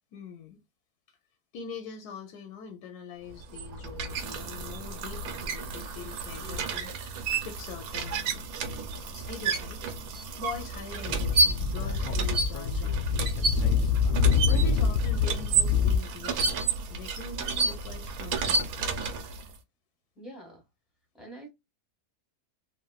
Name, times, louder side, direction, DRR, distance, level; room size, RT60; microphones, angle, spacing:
voice 1, 0.1-0.6 1.5-6.9 7.4-8.5 8.9-14.1 14.5-16.6 16.9-18.9, left 6 dB, 90° left, 1.2 m, -43 dB
sound 1, 3.3-19.5, right 4 dB, 70° right, 1.1 m, -31 dB
voice 2, 6.4-6.9 20.1-20.6 21.1-21.5, equal, ahead, 1.0 m, -46 dB
Speech / Wind, 11.0-16.0, left 5 dB, 70° left, 0.8 m, -25 dB
3.1 x 2.3 x 2.2 m
omnidirectional pair, 1.7 m